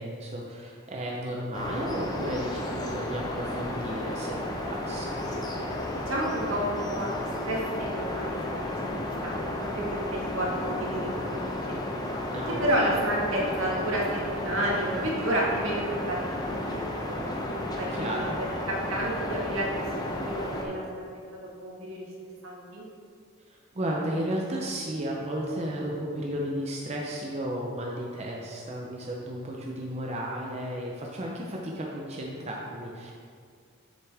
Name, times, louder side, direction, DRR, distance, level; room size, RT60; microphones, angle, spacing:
voice 1, 0.0-5.2 12.3-13.0 17.9-18.4 23.5-33.1, right 1 dB, 30° right, -2 dB, 0.6 m, -34 dB
sound 1, 1.5-20.6, left 1 dB, 20° left, 0.7 m, -33 dB
voice 2, 6.1-7.1 7.4-8.6 9.2-9.4 9.8-11.8 12.6-14.0 14.3-17.2 17.8-21.1 21.6-22.0 22.4-22.9, right 1 dB, 75° right, -4 dB, 1.8 m, -31 dB
7.5 x 6.9 x 3.4 m, 2.2 s
head